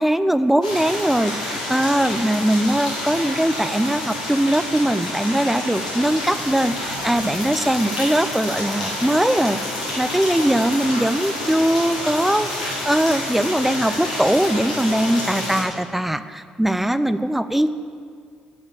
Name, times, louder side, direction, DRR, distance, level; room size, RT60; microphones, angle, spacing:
voice 1, 0.0-9.6 10.0-17.7, right 1 dB, 5° right, 12 dB, 0.4 m, -21 dB
sound 1, 0.6-15.6, left 1 dB, 85° left, 1.5 m, -28 dB
9.2 x 7.3 x 7.0 m, 2.2 s
figure-of-eight pair, 45°, 4 cm